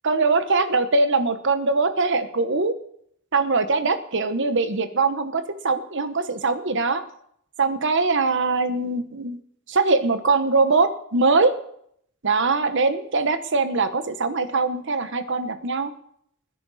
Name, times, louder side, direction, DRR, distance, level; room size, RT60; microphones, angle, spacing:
voice 1, 0.0-2.7 3.3-7.0 7.6-9.4 9.7-11.5 12.2-15.9, right 3 dB, 60° right, 10 dB, 1.1 m, -22 dB
21.0 x 10.0 x 4.2 m, 0.70 s
head